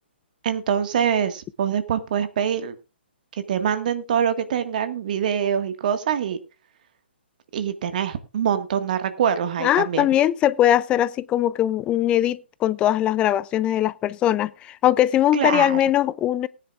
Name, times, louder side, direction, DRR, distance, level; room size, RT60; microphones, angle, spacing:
voice 1, 0.4-2.8 3.5-6.4 7.5-10.1 15.3-15.8, right 8 dB, 45° right, 1.7 m, -24 dB
voice 2, 9.6-16.5, left 12 dB, 15° left, 0.5 m, -21 dB
19.0 x 10.0 x 2.5 m
figure-of-eight pair, 130°, 6 cm